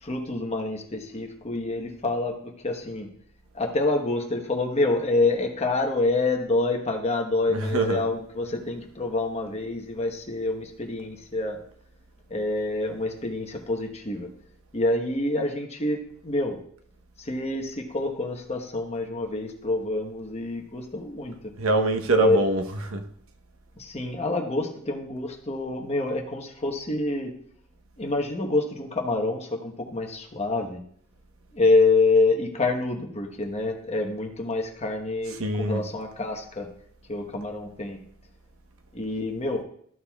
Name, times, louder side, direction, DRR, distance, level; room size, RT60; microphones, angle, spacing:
voice 1, 0.0-3.1 3.5-11.6 12.3-14.3 14.7-16.0 16.2-16.6 17.2-21.5 22.2-22.4 23.8-27.3 28.0-30.8 31.5-36.7 37.1-38.0 38.9-39.6, left 2 dB, 30° left, 3 dB, 1.1 m, -27 dB
voice 2, 7.5-8.0 21.6-23.0 35.4-35.8, right 2 dB, 75° right, 5 dB, 0.9 m, -24 dB
13.5 x 6.7 x 2.3 m, 0.62 s
head